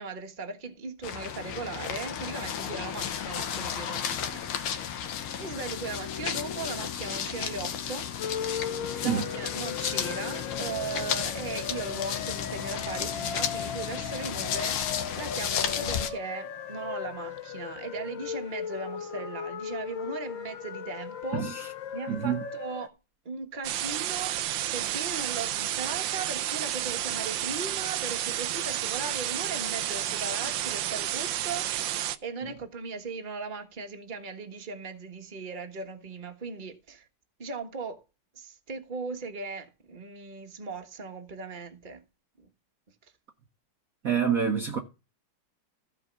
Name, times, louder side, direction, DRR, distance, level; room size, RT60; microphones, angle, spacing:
voice 1, 0.0-4.9 5.4-8.1 8.6-21.7 21.9-23.0 23.2-37.1 37.4-38.0 38.3-42.0 42.4-42.5, right 4 dB, 25° right, 1.4 m, -38 dB
sound 1, 1.0-16.1, left 8 dB, 85° left, 2.0 m, -33 dB
sound 2, 8.2-22.9, left 7 dB, 70° left, 1.6 m, -38 dB
voice 2, 21.3-21.7 22.1-22.4 44.0-44.8, right 7 dB, 50° right, 1.3 m, -27 dB
sound 3, 23.6-32.2, right 12 dB, 70° right, 1.4 m, -31 dB
14.5 x 5.0 x 6.1 m
omnidirectional pair, 2.3 m